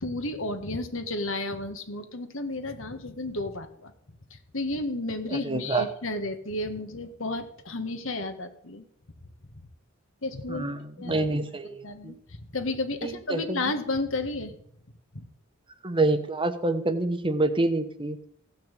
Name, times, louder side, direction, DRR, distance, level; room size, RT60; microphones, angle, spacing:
voice 1, 0.0-3.9 4.3-8.8 9.5-9.6 10.2-10.7 11.0-11.3 11.8-14.6 15.1-15.2, left 2 dB, 70° left, 8 dB, 1.8 m, -32 dB
voice 2, 5.3-5.9 10.5-12.1 13.0-13.6 15.8-18.2, right 2 dB, 25° right, 10 dB, 1.0 m, -27 dB
16.0 x 6.0 x 9.2 m, 0.67 s
head